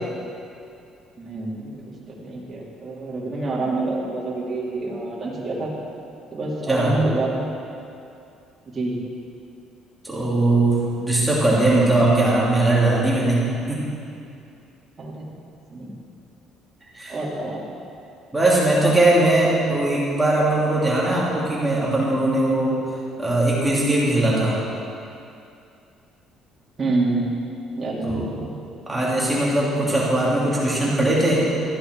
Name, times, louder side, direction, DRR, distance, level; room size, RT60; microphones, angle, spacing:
voice 1, 1.2-5.7 6.3-7.4 8.7-9.0 15.0-15.2 15.7-15.9 17.1-17.6 26.8-27.3 27.8-28.3, right 2 dB, 25° right, -6 dB, 2.7 m, -27 dB
voice 2, 10.0-13.4 13.7-13.8 16.9-17.2 18.3-22.8 23.2-24.6 28.0-28.5 28.9-31.4, right 2 dB, 5° right, -7 dB, 3.0 m, -20 dB
14.5 x 9.9 x 4.7 m, 2.6 s
cardioid pair, 140°, 0 cm